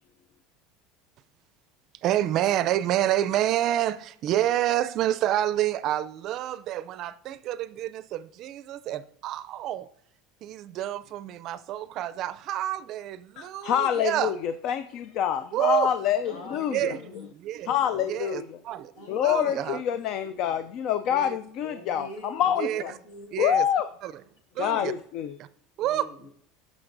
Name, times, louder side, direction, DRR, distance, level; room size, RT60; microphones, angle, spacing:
voice 1, 2.0-9.9 10.4-14.3 15.5-15.9 16.7-17.0 17.3-17.7 18.1-19.8 21.1-21.4 22.6-22.8 23.3-23.6 24.0-24.1 24.6-24.9 25.8-26.1, right 12 dB, 50° right, 0.4 m, -28 dB
voice 2, 13.4-17.3 17.6-18.6 19.1-22.9 23.4-23.9 24.6-25.4, left 9 dB, 55° left, 0.4 m, -27 dB
voice 3, 16.2-17.2 19.0-19.8 21.6-23.5 25.8-26.3, left 1 dB, 80° left, 1.9 m, -44 dB
14.5 x 6.1 x 2.6 m
supercardioid pair, 115°, 0 cm